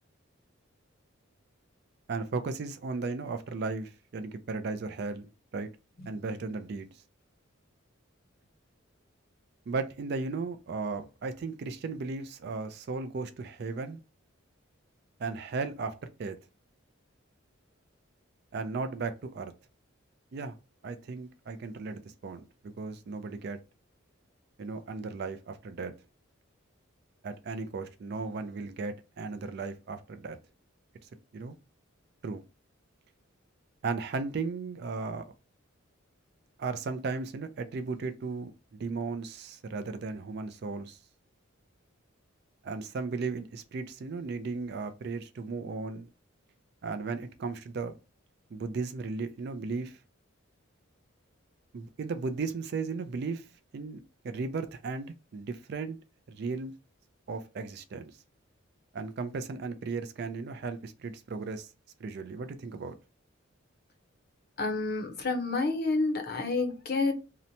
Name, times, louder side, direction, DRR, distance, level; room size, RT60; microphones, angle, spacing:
voice 1, 2.1-5.7 6.1-6.9 9.7-14.0 15.2-16.4 18.5-19.5 20.3-20.6 20.8-23.6 24.6-25.9 27.2-30.4 31.3-31.6 32.2-32.4 33.8-35.3 36.6-41.0 42.6-46.1 46.8-47.9 48.5-50.0 51.7-53.5 53.7-56.0 56.3-56.7 57.3-58.1 58.9-61.7 62.0-62.9, right 4 dB, 55° right, 0.3 m, -36 dB
voice 2, 64.6-67.1, left 3 dB, 50° left, 0.6 m, -29 dB
2.8 x 2.1 x 2.6 m
head